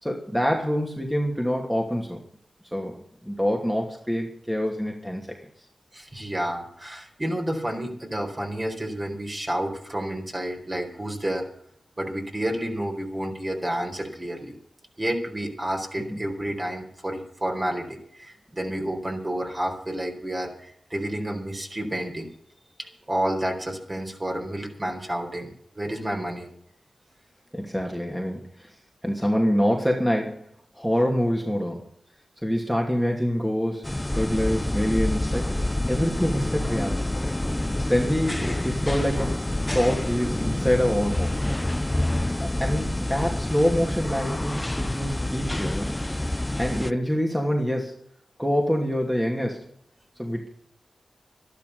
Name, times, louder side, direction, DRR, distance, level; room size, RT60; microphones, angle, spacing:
voice 1, 0.0-2.2 2.7-2.9 3.2-5.4 16.1-16.2 27.5-28.7 29.0-30.4 30.7-31.8 32.4-33.8 34.2-35.5 35.9-37.1 37.9-39.4 39.7-41.4 42.4-45.9 46.6-47.9 48.4-49.7 50.2-50.5, equal, ahead, 1 dB, 2.6 m, -25 dB
voice 2, 5.9-11.5 12.0-14.5 15.0-22.3 22.8-25.5 25.7-26.5, right 1 dB, 25° right, 3 dB, 4.4 m, -30 dB
sound 1, 33.8-46.9, left 1 dB, 15° left, 0.6 m, -27 dB
12.5 x 12.0 x 6.9 m, 0.65 s
cardioid pair, 55°, 0 cm